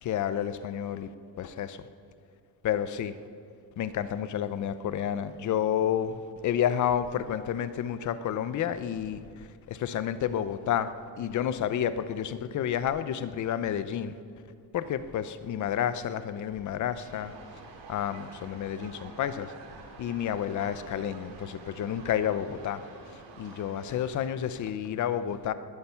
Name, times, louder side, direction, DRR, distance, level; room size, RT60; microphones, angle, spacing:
voice 1, 0.0-1.1 1.4-1.8 2.6-3.1 3.8-9.2 9.7-10.9 11.2-14.1 14.7-17.3 17.9-19.5 20.0-22.8 23.4-25.5, left 9 dB, 45° left, 13 dB, 0.7 m, -30 dB
sound 1, 17.0-24.3, right 4 dB, 85° right, 3.0 m, -48 dB
20.5 x 11.5 x 5.7 m, 2.4 s
cardioid pair, 180°, 42 cm